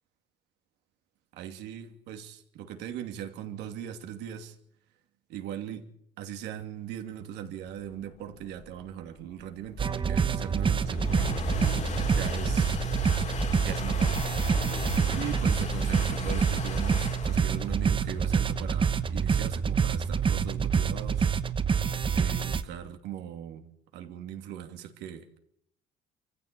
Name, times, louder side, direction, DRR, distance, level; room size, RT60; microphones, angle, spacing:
voice 1, 1.3-4.6 5.3-5.9 6.2-11.4 12.1-12.7 13.6-14.3 15.1-21.3 22.1-23.7 23.9-25.4, right 10 dB, 85° right, 2.8 m, -39 dB
sound 1, 8.0-21.3, left 5 dB, 45° left, 2.8 m, -37 dB
sound 2, 9.8-22.6, right 6 dB, 30° right, 1.1 m, -27 dB
24.5 x 15.0 x 8.5 m
cardioid pair, 110°, 17 cm